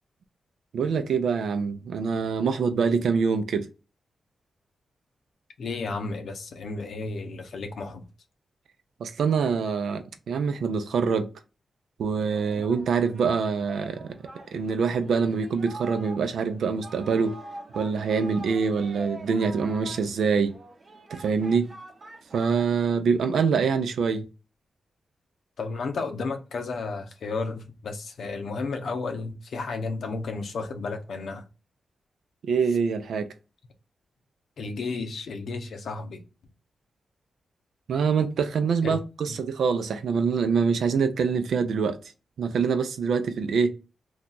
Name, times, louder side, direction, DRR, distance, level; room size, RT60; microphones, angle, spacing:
voice 1, 0.7-3.7 9.0-11.3 12.0-14.1 14.5-17.4 17.7-20.6 21.1-21.7 22.3-24.3 32.4-33.3 37.9-42.0 42.4-43.8, right 5 dB, 80° right, 0.5 m, -25 dB
voice 2, 5.6-8.0 25.6-31.5 34.6-36.2 38.8-39.0 39.3-39.4, left 3 dB, 75° left, 0.7 m, -33 dB
Singing, 12.2-23.2, right 2 dB, 45° right, 0.8 m, -44 dB
2.8 x 2.3 x 3.8 m
cardioid pair, 65°, 0 cm